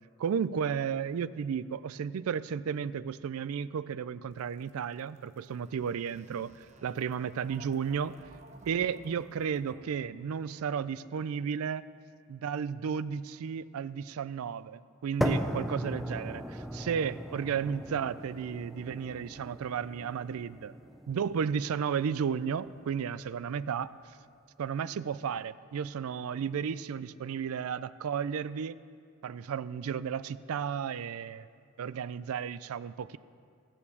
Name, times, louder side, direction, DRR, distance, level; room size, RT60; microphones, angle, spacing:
voice 1, 0.2-6.5 6.8-8.2 8.7-11.8 12.3-20.7 21.1-23.9 24.6-28.8 29.2-31.5 31.8-33.2, right 7 dB, 80° right, 16 dB, 0.4 m, -33 dB
sound 1, 4.3-11.0, right 2 dB, 30° right, 0.7 m, -56 dB
sound 2, 15.2-23.2, equal, ahead, 0.4 m, -37 dB
14.5 x 7.1 x 6.9 m, 2.3 s
head